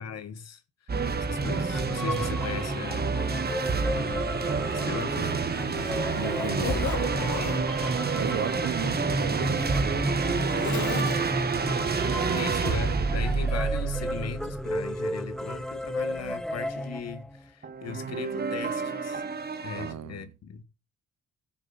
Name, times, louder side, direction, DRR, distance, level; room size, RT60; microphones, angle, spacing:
voice 1, 0.0-3.3 3.7-4.4 4.7-5.4 8.3-8.9 12.3-19.2 19.6-20.6, left 6 dB, 55° left, 1.4 m, -38 dB
sound 1, 0.9-15.9 17.6-19.9, right 5 dB, 30° right, 1.3 m, -29 dB
sound 2, 1.4-17.4, equal, ahead, 0.6 m, -33 dB
Zipper (clothing), 4.0-4.1 4.7-7.6 8.6-11.6 12.5-12.8 13.4-13.5, left 8 dB, 70° left, 1.6 m, -37 dB
voice 2, 6.2-7.6 8.1-11.4 12.1-12.5 19.8-20.3, right 11 dB, 60° right, 0.8 m, -37 dB
15.0 x 6.3 x 4.0 m
cardioid pair, 90°, 30 cm